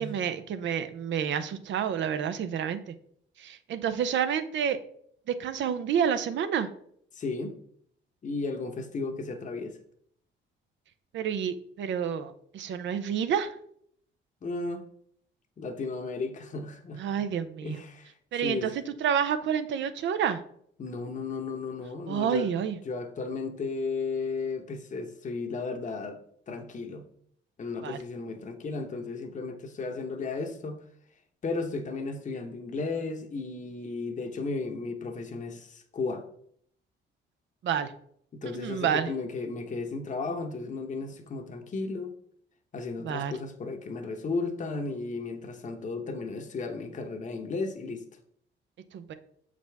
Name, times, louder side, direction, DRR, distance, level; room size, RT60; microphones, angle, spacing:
voice 1, 0.0-2.8 3.4-4.8 5.3-6.7 11.1-13.5 17.0-17.8 18.3-20.4 22.1-22.8 27.8-28.0 37.6-37.9 38.5-39.1 43.0-43.3 48.9-49.1, right 8 dB, 70° right, 0.7 m, -29 dB
voice 2, 7.1-7.6 8.2-9.8 14.4-14.9 15.6-17.3 17.6-18.1 18.4-18.7 20.8-26.2 26.5-27.0 27.6-30.8 31.4-36.2 38.3-42.1 42.7-48.0, left 3 dB, 40° left, 0.9 m, -34 dB
6.8 x 5.0 x 3.4 m
cardioid pair, 90°, 20 cm